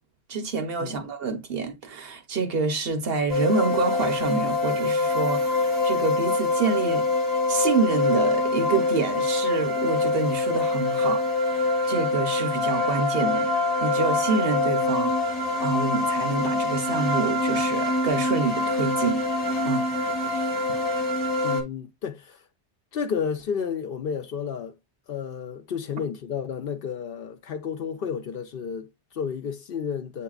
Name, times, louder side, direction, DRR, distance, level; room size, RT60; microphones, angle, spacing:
voice 1, 0.3-7.1 7.5-13.5 13.8-19.2 19.7-19.9 20.2-20.5, right 4 dB, 60° right, 1.0 m, -27 dB
sound 1, 3.3-21.6, left 2 dB, 35° left, 1.1 m, -25 dB
voice 2, 21.4-22.4 22.9-24.7 25.1-30.2, left 7 dB, 60° left, 0.7 m, -31 dB
7.8 x 2.9 x 2.3 m
omnidirectional pair, 1.2 m